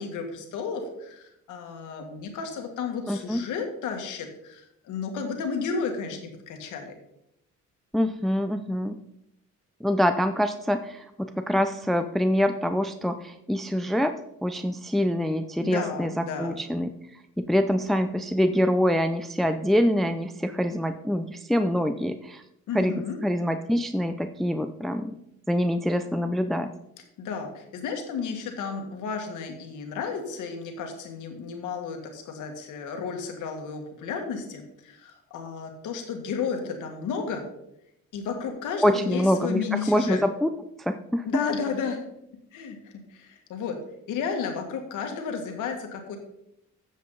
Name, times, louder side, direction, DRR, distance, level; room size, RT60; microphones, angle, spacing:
voice 1, 0.0-6.9 15.6-16.6 22.7-23.2 27.2-37.5 38.1-40.2 41.2-42.0 42.5-43.8 44.1-46.2, left 5 dB, 90° left, 4 dB, 1.9 m, -33 dB
voice 2, 3.1-3.4 7.9-9.0 9.8-14.1 14.4-16.9 17.4-22.4 22.7-25.2 25.5-26.7 38.8-40.5 40.8-41.3, equal, ahead, 9 dB, 0.5 m, -25 dB
12.5 x 7.4 x 4.0 m, 0.81 s
cardioid pair, 90°, 30 cm